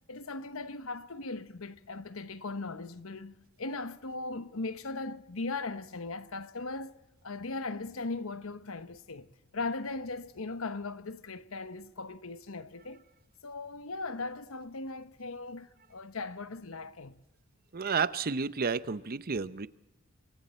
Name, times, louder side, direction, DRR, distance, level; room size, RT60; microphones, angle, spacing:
voice 1, 0.1-7.0 7.2-9.3 9.5-13.0 13.4-17.2, left 3 dB, 70° left, 1.0 m, -38 dB
voice 2, 17.7-19.7, right 5 dB, 45° right, 0.7 m, -31 dB
27.0 x 24.0 x 4.4 m
head